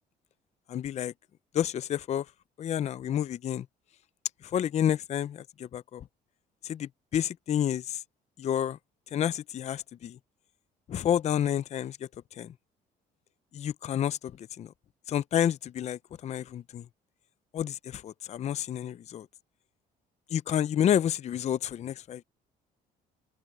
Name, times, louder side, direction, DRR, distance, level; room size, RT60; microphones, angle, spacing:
voice 1, 0.7-1.1 1.5-2.3 2.6-3.7 4.4-6.1 6.6-8.0 8.4-8.8 9.1-10.2 10.9-12.5 13.5-14.7 15.1-16.9 17.5-19.3 20.3-22.2, left 10 dB, 40° left, 0.5 m, -30 dB
open air
cardioid pair, 110°, 17 cm